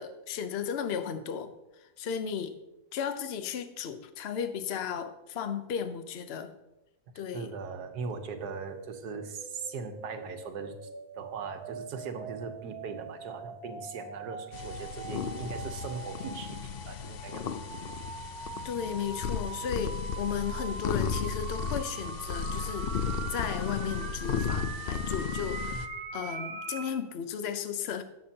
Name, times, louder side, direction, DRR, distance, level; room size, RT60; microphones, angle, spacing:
voice 1, 0.0-1.5 2.0-2.6 2.9-6.5 7.2-7.5 18.6-25.9 26.1-28.0, left 7 dB, 50° left, 9 dB, 0.8 m, -35 dB
voice 2, 7.3-10.8 11.1-17.7 25.7-25.8, right 5 dB, 85° right, 7 dB, 1.5 m, -39 dB
sound 1, 8.1-27.0, right 5 dB, 65° right, 1.4 m, -42 dB
sound 2, 14.5-25.9, left 7 dB, 85° left, 0.5 m, -35 dB
17.5 x 7.1 x 2.8 m, 0.95 s
omnidirectional pair, 1.7 m